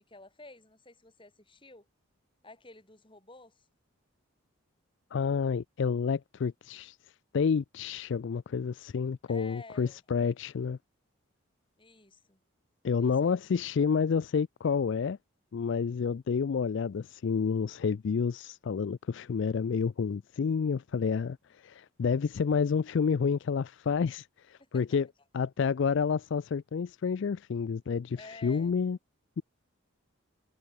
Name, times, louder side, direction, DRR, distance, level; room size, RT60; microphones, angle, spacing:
voice 1, 0.0-1.9 2.4-3.7 9.3-10.0 11.8-12.4 13.0-13.4 24.6-24.8 28.1-28.8, left 2 dB, 25° left, 3.4 m, -51 dB
voice 2, 5.1-7.0 7.3-10.8 12.8-15.2 15.5-25.1 25.3-29.0, left 6 dB, 55° left, 0.3 m, -29 dB
head